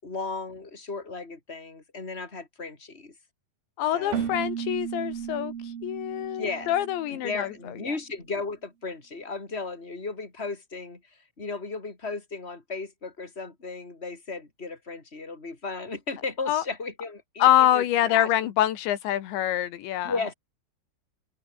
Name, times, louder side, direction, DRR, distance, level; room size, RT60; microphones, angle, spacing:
voice 1, 0.0-3.1 3.9-4.3 5.4-5.5 6.4-6.7 7.1-18.3 20.0-20.3, left 3 dB, 15° left, 4.8 m, -35 dB
voice 2, 3.8-5.5 5.8-7.5 16.5-16.6 17.4-20.1, left 12 dB, 80° left, 3.9 m, -25 dB
Keyboard (musical), 4.1-7.7, right 8 dB, 60° right, 4.4 m, -35 dB
open air
omnidirectional pair, 5.2 m